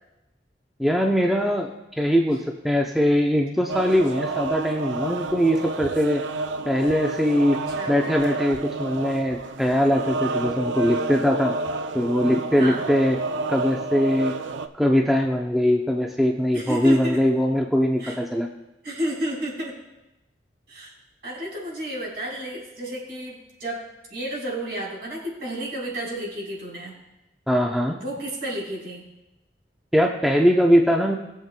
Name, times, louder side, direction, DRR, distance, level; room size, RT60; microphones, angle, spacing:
voice 1, 0.8-6.2 6.7-7.6 7.9-11.5 11.9-13.2 13.5-14.4 14.8-18.5 27.5-28.0 29.9-31.2, equal, ahead, 0 dB, 0.5 m, -21 dB
sound 1, 3.7-14.7, right 3 dB, 85° right, 0.5 m, -30 dB
voice 2, 16.5-17.2 18.0-18.2 18.8-19.8 20.7-20.9 21.2-23.8 24.1-27.0 28.0-29.1, right 1 dB, 60° right, -4 dB, 3.8 m, -31 dB
20.5 x 7.3 x 2.2 m, 0.96 s
head